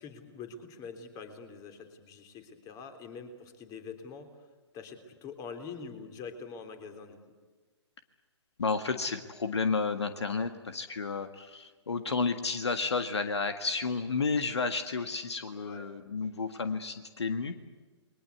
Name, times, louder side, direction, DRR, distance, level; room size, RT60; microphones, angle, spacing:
voice 1, 0.0-4.5 4.7-7.2 15.6-15.9, left 5 dB, 25° left, 7 dB, 3.5 m, -45 dB
voice 2, 8.6-17.8, left 4 dB, 70° left, 9 dB, 1.7 m, -31 dB
29.0 x 22.5 x 8.3 m, 1.3 s
figure-of-eight pair, 125°, 15 cm